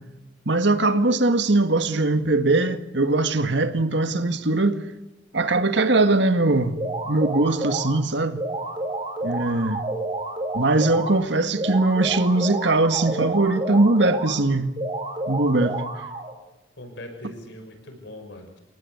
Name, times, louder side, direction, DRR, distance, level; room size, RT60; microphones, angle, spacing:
voice 1, 0.5-4.8 5.3-6.8 7.1-8.4 9.2-9.8 10.5-14.7 15.3-15.8, right 2 dB, 65° right, 1.9 m, -21 dB
sound 1, 6.8-8.0 8.4-11.2 11.6-14.4 14.8-16.3, right 2 dB, 25° right, 3.8 m, -30 dB
voice 2, 16.8-18.6, left 1 dB, 65° left, 6.1 m, -41 dB
29.0 x 18.0 x 8.2 m
head